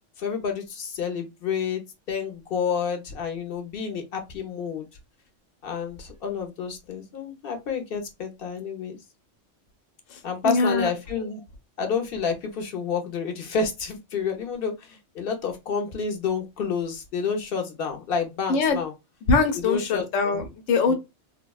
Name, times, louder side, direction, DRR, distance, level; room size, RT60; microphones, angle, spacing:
voice 1, 0.2-1.8 2.1-4.9 5.6-9.0 10.2-11.4 11.8-18.9 19.7-20.4 20.9-21.0, left 6 dB, 55° left, 0.9 m, -29 dB
voice 2, 10.1-10.9 18.5-18.8 19.3-20.9, left 4 dB, 85° left, 1.1 m, -23 dB
3.4 x 2.1 x 2.3 m
omnidirectional pair, 1.3 m